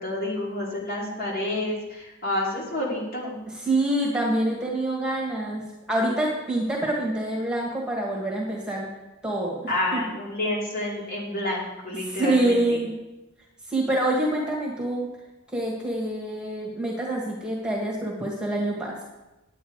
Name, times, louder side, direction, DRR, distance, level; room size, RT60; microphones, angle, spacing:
voice 1, 0.0-3.4 9.7-12.8, left 1 dB, 45° left, -4 dB, 2.9 m, -29 dB
voice 2, 3.6-5.6 5.9-8.9 9.2-10.0 12.0-12.9 13.7-15.1 15.5-19.0, right 1 dB, 5° right, -2 dB, 1.6 m, -26 dB
10.0 x 9.0 x 4.7 m, 1.0 s
head